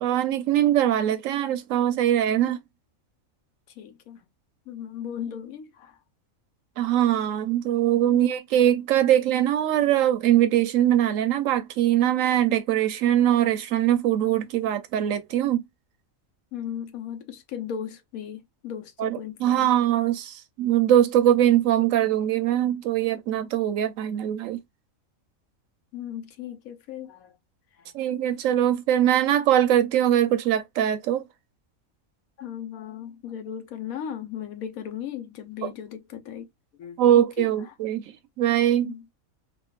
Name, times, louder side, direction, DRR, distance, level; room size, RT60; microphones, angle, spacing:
voice 1, 0.0-2.6 6.8-15.6 19.0-24.6 27.9-31.3 35.6-35.7 37.0-38.9, right 11 dB, 75° right, 0.9 m, -22 dB
voice 2, 3.8-4.2 4.7-5.9 8.1-8.3 16.5-19.7 25.9-27.3 27.8-27.9 32.4-36.5 36.8-37.5 38.8-39.0, left 9 dB, 90° left, 1.2 m, -36 dB
3.7 x 2.3 x 2.3 m
omnidirectional pair, 1.4 m